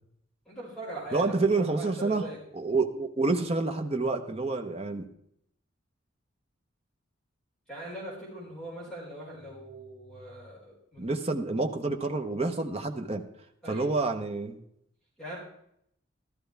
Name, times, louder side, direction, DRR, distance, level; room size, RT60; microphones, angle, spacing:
voice 1, 0.4-2.4 7.7-11.1 13.6-13.9 15.2-15.4, right 1 dB, 5° left, -8 dB, 5.1 m, -41 dB
voice 2, 1.1-2.3 2.5-5.1 11.0-13.2 13.7-14.6, right 3 dB, 30° right, 5 dB, 0.9 m, -28 dB
13.5 x 13.0 x 3.4 m, 0.73 s
head